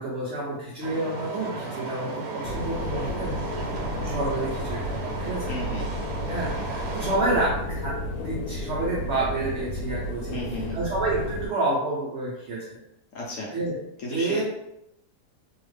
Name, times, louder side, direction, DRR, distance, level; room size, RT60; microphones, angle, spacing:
voice 1, 0.0-3.3 4.0-5.5 6.3-7.9 8.2-10.4 10.7-12.8 13.5-13.8 14.1-14.4, right 2 dB, 60° right, -5 dB, 0.7 m, -29 dB
sound 1, 0.8-7.2, right 3 dB, 85° right, 1.3 m, -35 dB
sound 2, 2.4-11.5, equal, 85° left, 1.2 m, -32 dB
voice 2, 5.5-5.8 10.3-10.8 13.1-13.5 14.0-14.4, left 1 dB, 65° left, -3 dB, 0.9 m, -33 dB
2.8 x 2.4 x 3.2 m, 0.83 s
omnidirectional pair, 1.8 m